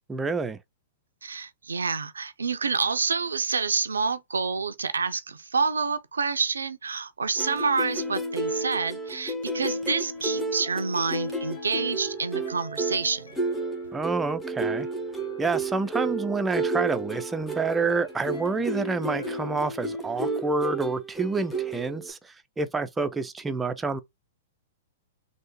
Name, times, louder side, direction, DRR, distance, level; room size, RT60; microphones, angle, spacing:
voice 1, 0.1-0.6 13.9-14.9 15.4-24.0, right 4 dB, 10° right, 0.4 m, -28 dB
voice 2, 1.2-13.4, right 5 dB, 90° right, 0.4 m, -28 dB
sound 1, 7.4-22.1, right 2 dB, 5° left, 0.8 m, -32 dB
sound 2, 10.1-20.6, left 1 dB, 80° left, 0.9 m, -49 dB
3.4 x 2.1 x 3.0 m
hypercardioid pair, 115°, 0 cm